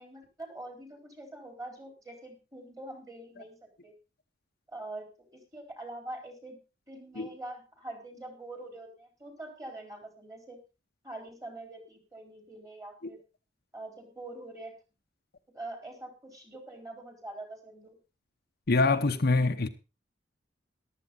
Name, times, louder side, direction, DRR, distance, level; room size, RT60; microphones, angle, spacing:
voice 1, 0.0-3.6 3.8-3.9 4.7-5.1 5.3-6.6 6.9-10.6 11.0-13.2 13.7-14.7 15.5-18.0, right 2 dB, 20° right, 4.3 m, -44 dB
voice 2, 18.7-19.7, left 3 dB, 55° left, 0.8 m, -24 dB
14.0 x 12.0 x 3.9 m
head